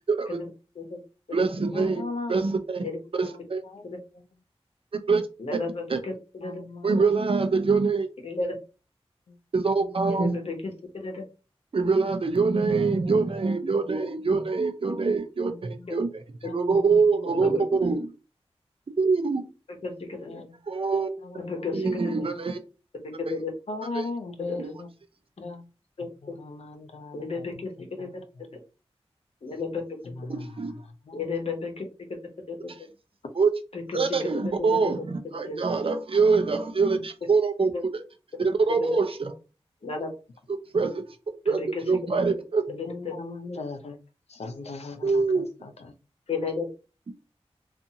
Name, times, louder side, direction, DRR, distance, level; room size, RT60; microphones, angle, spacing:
voice 1, 0.1-0.4 1.3-2.0 2.3-2.9 3.1-3.6 5.1-5.2 5.5-5.6 5.9-6.0 6.8-8.1 9.5-10.4 11.7-18.1 19.0-19.4 20.7-21.1 21.7-22.6 23.3-23.4 24.6-24.7 30.3-30.7 32.7-32.8 33.4-33.5 33.9-38.0 38.4-39.3 40.5-41.0 41.4-41.6 41.9-42.6 45.0-45.5, right 4 dB, 60° right, 7 dB, 0.5 m, -24 dB
voice 2, 1.7-2.5 3.2-3.8 4.1-4.4 6.4-7.3 9.3-9.4 14.8-15.1 15.5-15.9 16.4-17.8 20.3-20.7 21.2-22.3 23.7-24.9 25.4-25.7 26.0-28.4 30.0-31.3 42.7-44.0 44.3-46.0, left 3 dB, 90° left, 7 dB, 0.5 m, -39 dB
voice 3, 5.4-6.6 7.0-7.1 8.2-8.6 10.1-11.2 15.9-16.0 17.4-17.6 19.8-20.4 21.4-22.0 23.2-23.5 24.6-24.7 26.0-26.1 27.1-28.1 29.4-29.8 31.1-31.8 32.5-32.6 33.7-34.9 35.3-35.6 37.7-37.8 38.8-38.9 39.8-40.1 41.5-42.2 42.8-42.9 46.3-46.7, left 4 dB, 70° left, 2 dB, 0.9 m, -33 dB
2.6 x 2.5 x 2.7 m, 0.32 s
wide cardioid pair, 85°, 11 cm